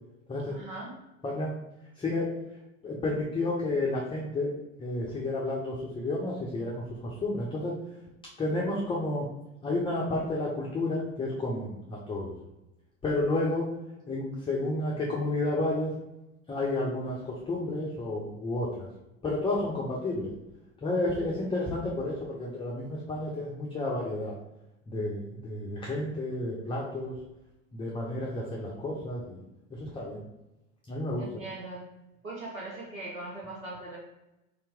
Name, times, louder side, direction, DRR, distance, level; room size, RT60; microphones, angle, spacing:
voice 1, 0.5-1.0 31.2-31.9 32.2-34.0, right 2 dB, 80° right, -4 dB, 1.0 m, -40 dB
voice 2, 1.2-1.5 2.0-2.3 2.8-4.5 4.8-7.8 8.4-9.3 9.6-12.3 13.0-13.7 14.1-15.9 16.5-18.9 19.2-20.3 20.8-24.4 24.9-27.2 27.7-29.4 29.7-30.2 30.9-31.2, left 2 dB, 15° left, -3 dB, 0.7 m, -31 dB
3.4 x 2.9 x 3.5 m, 0.93 s
figure-of-eight pair, 75°, 40 cm